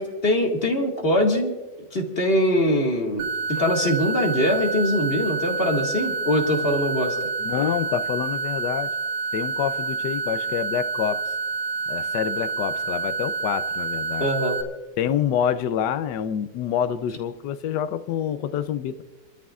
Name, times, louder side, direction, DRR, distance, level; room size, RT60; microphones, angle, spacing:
voice 1, 0.0-1.5 1.9-3.3 3.6-7.2 14.2-14.6, left 1 dB, 30° left, 1 dB, 1.9 m, -22 dB
sound 1, 3.2-14.6, right 4 dB, 85° right, 2.1 m, -28 dB
voice 2, 7.4-8.9 9.3-11.2 11.9-14.3 15.0-19.0, left 9 dB, 70° left, 12 dB, 1.3 m, -27 dB
28.5 x 13.0 x 2.4 m, 1.1 s
omnidirectional pair, 2.0 m